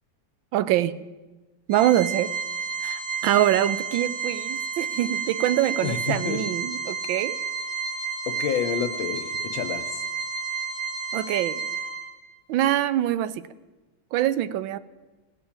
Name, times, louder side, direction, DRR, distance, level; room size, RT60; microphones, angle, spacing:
voice 1, 0.5-1.0 1.7-2.3 2.8-7.4 11.1-11.6 12.5-13.5 14.1-14.8, right 12 dB, 80° right, 15 dB, 1.3 m, -24 dB
Organ, 1.7-12.3, right 6 dB, 55° right, 2.8 m, -31 dB
voice 2, 5.8-6.4 8.3-9.9, left 8 dB, 75° left, 7 dB, 1.6 m, -28 dB
17.5 x 7.1 x 8.7 m, 1.2 s
omnidirectional pair, 2.2 m